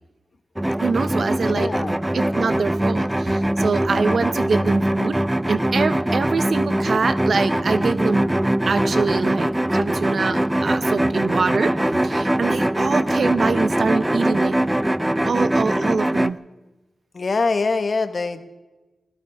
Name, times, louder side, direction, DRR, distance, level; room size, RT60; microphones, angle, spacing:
sound 1, 0.6-16.3, right 1 dB, 15° right, 0.5 m, -22 dB
voice 1, 0.8-1.7 2.1-5.2 5.5-8.3 8.7-11.7 12.0-14.6 15.3-16.4, right 4 dB, 70° right, 12 dB, 0.8 m, -24 dB
voice 2, 1.4-2.0 17.1-18.4, left 4 dB, 60° left, 9 dB, 1.4 m, -23 dB
25.5 x 16.0 x 3.6 m, 1.1 s
cardioid pair, 45°, 0 cm